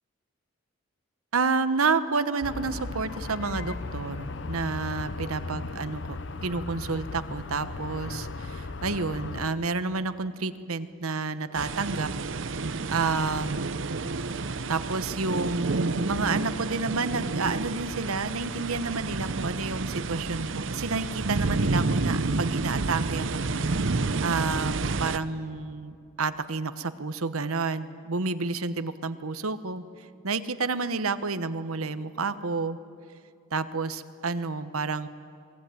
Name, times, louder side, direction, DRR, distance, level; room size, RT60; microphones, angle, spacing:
voice 1, 1.3-12.1 12.5-13.7 14.7-23.4 24.2-29.8 30.2-32.8 33.5-35.1, right 4 dB, 90° right, 12 dB, 1.1 m, -30 dB
sound 1, 2.4-9.5, left 3 dB, 55° left, 0.7 m, -36 dB
sound 2, 11.6-25.2, right 3 dB, 65° right, 0.7 m, -30 dB
27.5 x 20.0 x 9.3 m, 2.4 s
head